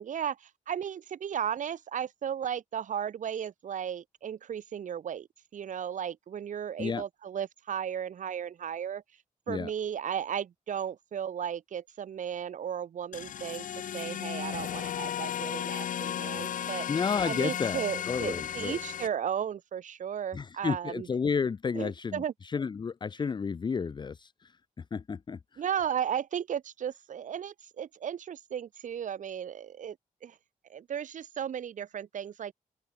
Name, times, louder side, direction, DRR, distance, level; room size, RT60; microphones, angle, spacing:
voice 1, 0.0-5.3 5.5-9.0 9.5-13.7 13.9-16.9 17.2-21.1 21.7-22.3 25.6-30.0 30.2-30.4 30.7-32.5, right 8 dB, 60° right, 1.7 m, -35 dB
sound 1, 13.1-19.1, left 10 dB, 70° left, 1.0 m, -35 dB
voice 2, 16.9-18.8 20.3-24.6 24.9-25.6, left 5 dB, 30° left, 0.6 m, -32 dB
open air
cardioid pair, 120°, 14 cm